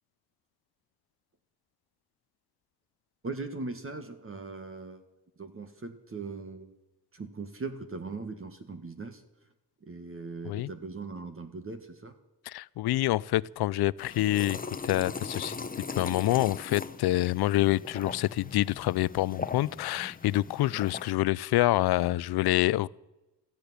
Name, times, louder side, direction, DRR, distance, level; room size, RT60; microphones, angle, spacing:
voice 1, 3.2-5.0 5.4-6.7 7.1-9.2 9.8-12.1 20.6-20.8, right 3 dB, 35° right, 8 dB, 1.7 m, -39 dB
voice 2, 12.5-14.6 14.8-15.6 15.9-22.9, left 16 dB, 70° left, 22 dB, 0.6 m, -27 dB
sound 1, 14.0-21.1, left 4 dB, 20° left, 0.9 m, -39 dB
14.0 x 10.0 x 9.6 m, 0.99 s
cardioid pair, 90°, 39 cm